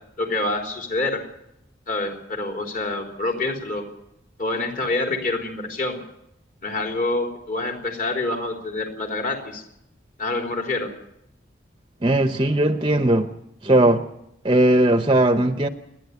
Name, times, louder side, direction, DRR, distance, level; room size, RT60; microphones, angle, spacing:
voice 1, 0.2-1.2 1.9-3.9 4.4-6.0 6.6-9.6 10.2-10.9, left 2 dB, 45° left, 2 dB, 3.6 m, -26 dB
voice 2, 12.0-13.3 13.6-14.0 14.4-15.7, right 1 dB, 25° right, 8 dB, 0.8 m, -18 dB
28.5 x 11.0 x 8.3 m, 0.81 s
head